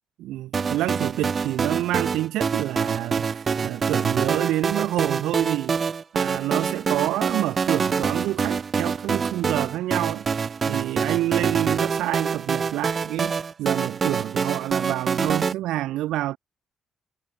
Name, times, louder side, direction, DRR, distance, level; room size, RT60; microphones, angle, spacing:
voice 1, 0.2-5.8 6.1-10.3 10.7-16.4, right 15 dB, 90° right, 1.2 m, -28 dB
sound 1, 0.5-15.5, right 5 dB, 40° right, 0.4 m, -26 dB
cardioid pair, 90°, 0 cm